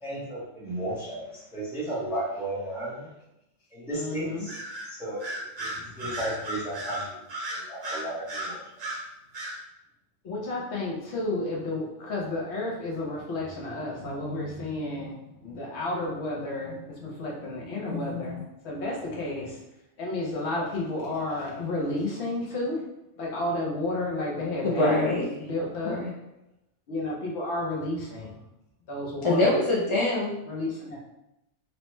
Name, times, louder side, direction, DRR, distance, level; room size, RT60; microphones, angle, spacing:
voice 1, 0.0-3.1 3.7-4.6 5.0-7.2 7.5-8.6, right 1 dB, 5° right, -8 dB, 0.7 m, -34 dB
voice 2, 3.9-4.5 5.8-6.2 10.2-15.2 15.4-19.6 20.0-22.8 23.2-26.0 26.9-28.4 28.9-29.5 30.5-31.0, left 2 dB, 65° left, -2 dB, 0.9 m, -32 dB
Bird vocalization bird call bird song, 4.5-4.9 5.2-9.0 9.3-9.6, right 1 dB, 45° right, 0.6 m, -35 dB
voice 3, 17.9-18.4 24.6-25.3 25.8-26.1 29.2-30.3, left 2 dB, 50° left, -4 dB, 0.3 m, -25 dB
3.0 x 2.1 x 3.0 m, 0.88 s
omnidirectional pair, 1.3 m